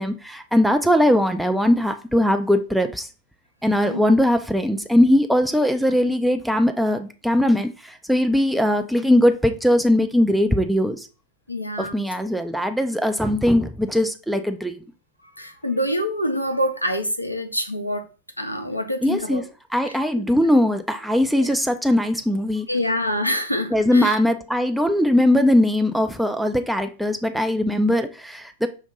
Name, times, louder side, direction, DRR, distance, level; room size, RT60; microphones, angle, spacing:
voice 1, 0.0-3.1 3.6-11.1 11.8-14.8 19.0-19.5 19.7-22.7 23.7-28.7, left 1 dB, ahead, 0.3 m, -20 dB
voice 2, 11.5-11.9 15.4-18.0 18.4-19.4 21.4-21.5 22.7-24.2, equal, 90° left, 0.6 m, -25 dB
5.2 x 2.6 x 3.8 m
figure-of-eight pair, 90°, 0 cm